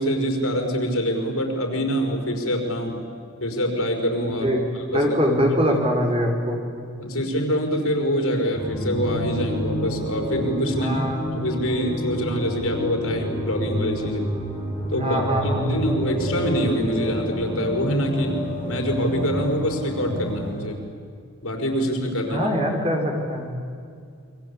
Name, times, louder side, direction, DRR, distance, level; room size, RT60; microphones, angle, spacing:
voice 1, 0.0-3.0 3.4-4.5 4.7-5.0 5.7-5.8 7.0-11.0 11.3-14.3 14.9-18.4 18.6-20.8 21.4-22.5, equal, 85° left, 3 dB, 5.3 m, -25 dB
voice 2, 4.3-4.6 4.9-6.6 10.7-11.3 14.9-15.8 22.3-23.5, equal, 25° right, 1 dB, 4.2 m, -23 dB
sound 1, 8.5-20.5, equal, 10° right, 6.2 m, -29 dB
28.5 x 23.5 x 8.7 m, 2.3 s
head